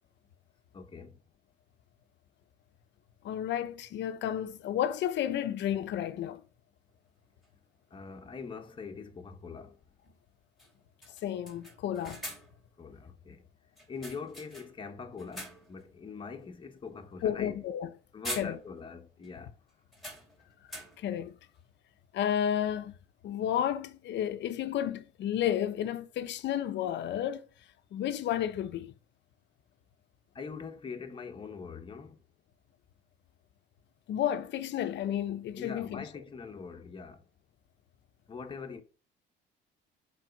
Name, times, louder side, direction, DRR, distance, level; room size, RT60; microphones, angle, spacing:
voice 1, 0.7-1.1 7.9-9.7 12.8-13.4 13.9-17.6 18.1-19.5 30.3-32.2 35.6-37.2 38.3-38.8, left 5 dB, 25° left, 1.2 m, -43 dB
voice 2, 3.2-6.4 11.2-12.2 17.2-17.9 18.4-18.6 21.0-21.3 22.1-22.9 23.2-27.4 27.9-28.9 34.1-36.0, left 10 dB, 60° left, 1.0 m, -32 dB
sound 1, 7.4-7.5 9.6-9.7 10.1-10.2 10.6-10.7 11.0-12.7 13.8-14.9 15.2-15.8 16.3-16.5 17.7-17.9 18.2-19.0 19.2-19.3 19.9-21.2, equal, ahead, 2.6 m, -44 dB
7.6 x 4.4 x 5.3 m
cardioid pair, 150°, 21 cm